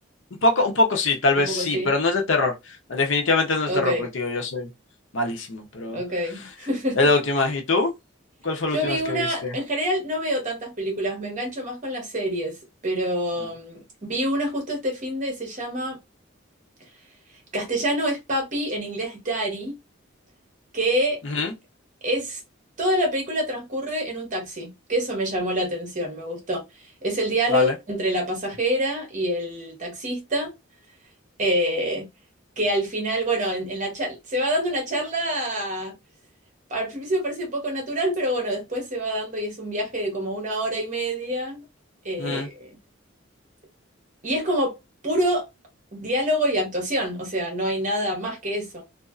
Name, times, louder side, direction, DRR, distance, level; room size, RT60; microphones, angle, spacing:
voice 1, 0.4-4.7 5.1-6.0 7.0-7.9 8.4-9.5 21.2-21.5 27.5-27.7 42.2-42.5, left 3 dB, 70° left, 0.7 m, -23 dB
voice 2, 1.4-1.9 3.7-4.1 5.9-7.0 8.7-12.6 12.8-16.0 17.5-19.8 20.7-21.2 22.0-22.4 22.8-26.6 27.0-30.5 31.4-32.1 32.6-35.9 36.7-41.6 42.0-42.7 44.2-44.7 45.0-45.4 45.9-48.8, equal, 40° right, 1.0 m, -26 dB
2.5 x 2.3 x 2.4 m
head